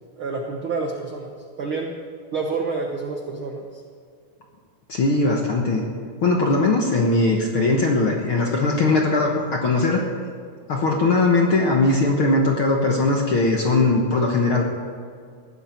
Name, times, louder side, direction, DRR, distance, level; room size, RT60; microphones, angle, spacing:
voice 1, 0.2-1.3 1.6-1.9 2.3-3.8, right 4 dB, 70° right, 2 dB, 1.2 m, -28 dB
voice 2, 4.9-5.8 6.2-10.0 10.7-14.6, left 2 dB, 55° left, 0 dB, 1.5 m, -20 dB
19.5 x 14.5 x 4.5 m, 2.2 s
omnidirectional pair, 4.0 m